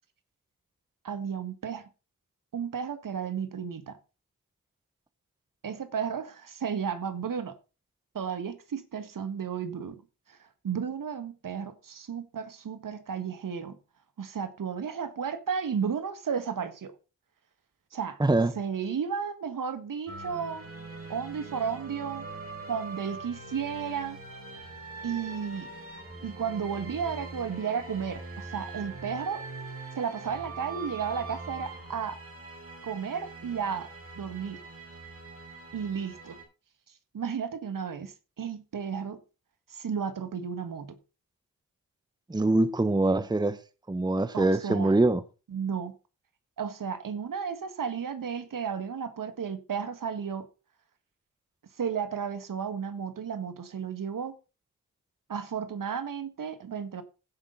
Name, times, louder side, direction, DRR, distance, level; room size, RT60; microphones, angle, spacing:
voice 1, 1.0-1.9 2.5-4.0 5.6-7.5 8.1-9.9 10.3-13.8 14.2-16.9 17.9-18.2 18.5-20.7 21.1-22.2 22.7-24.2 25.0-25.7 26.2-29.4 29.9-32.2 32.8-33.9 34.2-34.6 35.7-36.4 37.1-39.2 39.7-41.0 44.3-44.9 45.5-45.9 46.6-50.5 51.8-54.3 55.3-57.0, right 7 dB, 60° right, 1.6 m, -33 dB
voice 2, 18.2-18.5 42.3-43.6 43.9-45.2, right 2 dB, 10° right, 0.9 m, -24 dB
sound 1, 20.1-36.4, right 3 dB, 40° right, 4.8 m, -42 dB
16.5 x 5.5 x 3.9 m
cardioid pair, 55°, 36 cm